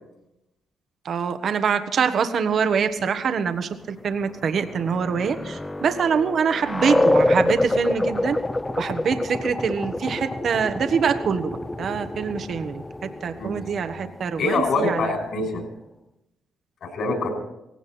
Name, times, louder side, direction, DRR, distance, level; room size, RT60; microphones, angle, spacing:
voice 1, 1.0-8.4 8.8-15.1, right 6 dB, 55° right, 9 dB, 1.2 m, -24 dB
sound 1, 4.2-15.6, left 2 dB, 15° left, 0.7 m, -27 dB
voice 2, 14.4-15.6 16.8-17.3, left 3 dB, 65° left, 3 dB, 5.8 m, -24 dB
18.0 x 16.5 x 4.3 m, 0.88 s
cardioid pair, 90°, 0 cm